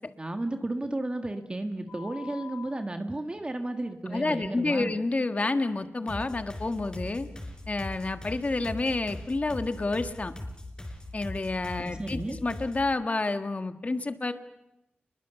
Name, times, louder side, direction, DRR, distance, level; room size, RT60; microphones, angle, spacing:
voice 1, 0.2-4.9 11.8-12.4, right 2 dB, 25° right, 6 dB, 1.7 m, -33 dB
sound 1, 1.9-2.7 5.5-5.6, left 7 dB, 70° left, 5.6 m, -44 dB
voice 2, 4.1-7.3 7.7-10.3 11.1-14.3, left 3 dB, 35° left, 9 dB, 1.5 m, -29 dB
sound 2, 6.1-12.9, left 1 dB, 20° left, 4.4 m, -40 dB
30.0 x 21.5 x 7.0 m, 0.91 s
wide cardioid pair, 115°, 4 cm